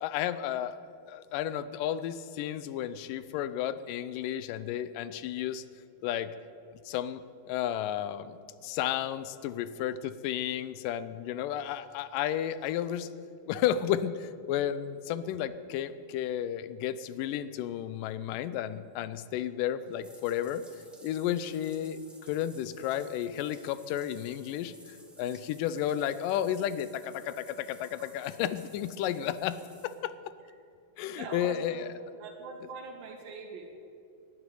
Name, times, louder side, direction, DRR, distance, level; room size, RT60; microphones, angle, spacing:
voice 1, 0.0-0.8 1.1-5.6 6.0-6.3 6.9-7.2 7.5-8.4 8.6-13.1 13.5-20.6 21.0-22.0 22.3-29.6 29.8-30.1 31.0-31.9, left 11 dB, 80° left, 15 dB, 2.1 m, -32 dB
Bathtub (filling or washing), 19.8-29.9, equal, ahead, 0.7 m, -56 dB
voice 2, 31.1-31.9 32.2-33.7, right 4 dB, 80° right, 1 dB, 3.8 m, -42 dB
12.5 x 11.0 x 9.8 m, 2.4 s
omnidirectional pair, 4.1 m